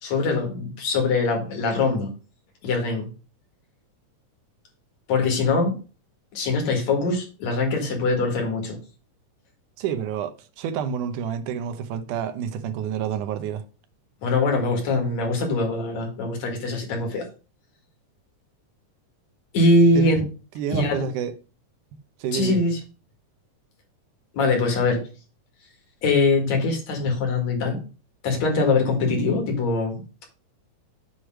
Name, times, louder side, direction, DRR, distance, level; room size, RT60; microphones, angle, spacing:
voice 1, 0.0-2.1 2.6-3.1 5.1-5.8 6.3-8.8 14.2-17.3 19.5-20.2 20.7-21.0 22.3-22.8 24.3-25.0 26.0-27.8 28.2-30.0, left 3 dB, 65° left, 3.0 m, -22 dB
voice 2, 9.8-13.6 20.0-20.2 20.6-21.3 22.2-22.6, right 8 dB, 85° right, 2.3 m, -28 dB
8.2 x 3.2 x 6.1 m
omnidirectional pair, 3.5 m